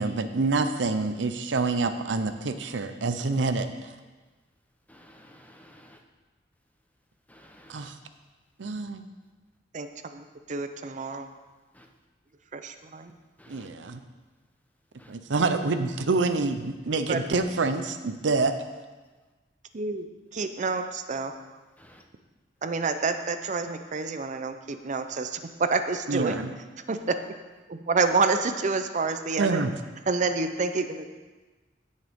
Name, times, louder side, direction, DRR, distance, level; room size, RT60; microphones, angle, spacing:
voice 1, 0.0-3.9 7.7-7.9 8.6-9.0 13.5-14.0 15.1-18.5 26.1-26.5 29.4-29.7, right 3 dB, 85° right, 9 dB, 0.7 m, -27 dB
voice 2, 4.9-6.0 7.3-7.9 11.7-11.9 13.4-13.7 15.0-15.1 21.8-22.0, equal, 10° left, 2 dB, 0.8 m, -53 dB
voice 3, 9.7-11.3 12.5-13.1 17.1-17.2 19.7-20.1 20.3-21.3 22.6-26.4 26.9-27.2 27.7-29.6 30.1-31.0, right 4 dB, 40° right, 8 dB, 0.6 m, -28 dB
16.5 x 6.5 x 3.6 m, 1.3 s
head